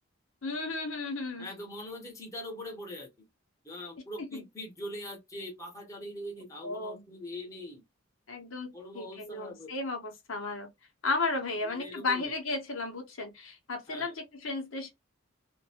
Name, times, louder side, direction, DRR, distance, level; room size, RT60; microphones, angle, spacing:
voice 1, 0.4-1.5 4.2-4.4 6.6-7.0 8.3-10.7 11.0-14.9, left 3 dB, 85° left, 0.9 m, -34 dB
voice 2, 1.4-3.1 3.6-7.8 8.7-9.7 11.6-12.3 13.9-14.1, left 1 dB, 15° left, 0.9 m, -42 dB
2.6 x 2.2 x 2.7 m
head